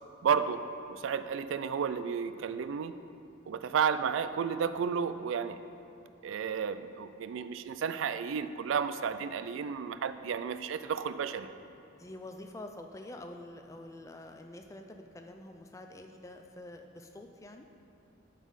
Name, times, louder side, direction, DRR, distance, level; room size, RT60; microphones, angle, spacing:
voice 1, 0.2-0.6 0.9-2.9 3.5-5.6 6.2-11.5, right 6 dB, 75° right, 12 dB, 0.3 m, -32 dB
voice 2, 11.9-17.7, left 1 dB, 15° left, 4 dB, 0.4 m, -47 dB
9.0 x 4.1 x 6.2 m, 2.8 s
head